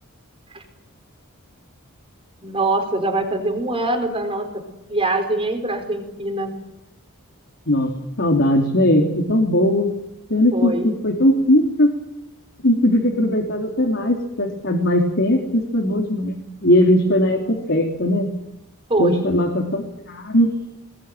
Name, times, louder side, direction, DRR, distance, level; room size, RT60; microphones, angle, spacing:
voice 1, 2.4-6.6 10.5-11.0 18.9-19.3, right 2 dB, 25° right, 5 dB, 4.5 m, -24 dB
voice 2, 8.2-9.9 10.3-11.9 12.6-16.3 16.6-18.3 19.0-20.5, left 1 dB, 55° left, 1 dB, 3.4 m, -19 dB
21.0 x 20.0 x 9.4 m, 0.90 s
head